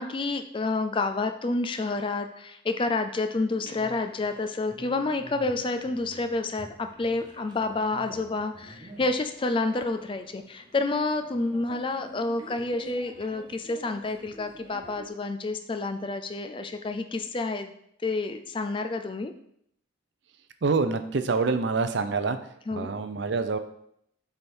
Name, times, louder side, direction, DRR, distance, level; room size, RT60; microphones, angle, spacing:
voice 1, 0.0-17.7 18.0-19.3 22.7-22.9, left 3 dB, 25° left, 8 dB, 0.4 m, -29 dB
sound 1, 3.6-15.1, right 1 dB, 20° right, 0.7 m, -49 dB
voice 2, 20.6-23.6, right 4 dB, 60° right, 10 dB, 0.5 m, -26 dB
7.9 x 3.5 x 4.3 m, 0.71 s
head